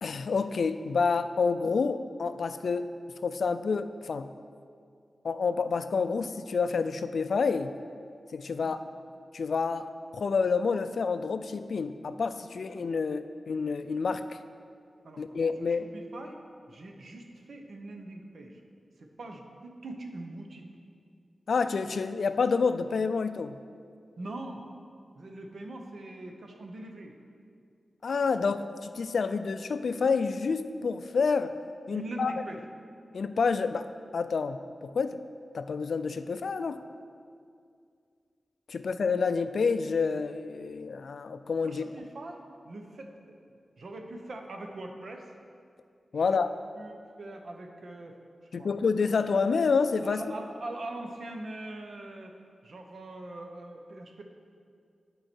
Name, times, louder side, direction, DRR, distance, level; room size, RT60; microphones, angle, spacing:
voice 1, 0.0-2.9 3.2-4.3 5.2-7.7 8.3-8.8 9.3-14.4 15.2-15.9 21.5-23.6 28.0-31.5 31.9-32.3 33.1-33.9 34.1-35.2 35.5-36.8 38.7-41.8 46.1-46.5 48.5-50.2, left 5 dB, 75° left, 10 dB, 0.3 m, -28 dB
voice 2, 15.0-16.4 16.7-18.6 19.0-20.7 24.2-24.6 25.1-27.2 31.9-32.6 41.6-43.4 43.8-45.3 46.1-46.4 46.7-48.2 48.4-48.7 50.0-52.3 52.6-54.2, right 1 dB, 65° right, 3 dB, 0.8 m, -42 dB
11.0 x 4.7 x 4.4 m, 2.3 s
wide cardioid pair, 115°, 0 cm